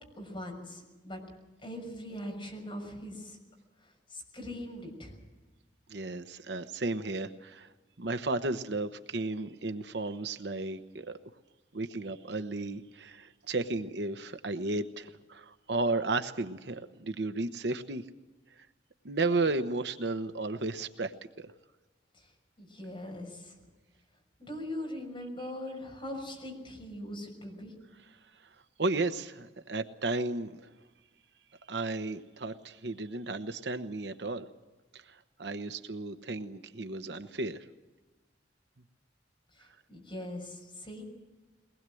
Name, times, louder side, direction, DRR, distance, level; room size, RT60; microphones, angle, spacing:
voice 1, 0.2-1.2 1.6-3.4 4.1-5.2 22.1-22.2 22.6-23.5 24.4-27.7 39.6-41.0, left 1 dB, 30° left, 1 dB, 6.4 m, -41 dB
voice 2, 5.9-7.7 8.0-11.2 11.7-18.0 19.0-21.1 21.4-21.5 28.8-30.6 31.7-34.5 34.9-35.0 35.4-37.6, right 2 dB, 65° right, 9 dB, 1.0 m, -33 dB
22.5 x 20.0 x 7.8 m, 1.2 s
head